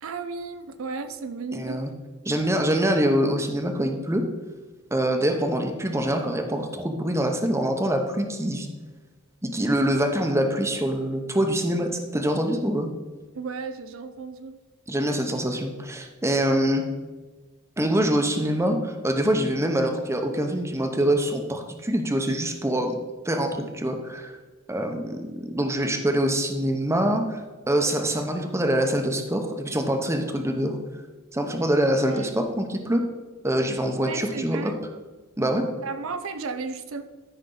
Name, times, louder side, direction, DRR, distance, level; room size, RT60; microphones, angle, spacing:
voice 1, 0.0-1.8 13.3-14.6 32.0-32.3 34.0-34.8 35.8-37.0, right 4 dB, 75° right, 9 dB, 0.6 m, -34 dB
voice 2, 1.5-1.9 2.2-4.2 4.9-8.7 9.4-12.9 14.9-16.8 17.8-23.0 23.2-24.4 24.7-30.8 31.3-33.0 33.4-34.7 35.4-35.7, right 1 dB, 15° right, 5 dB, 0.8 m, -25 dB
13.0 x 5.6 x 3.9 m, 1.3 s
head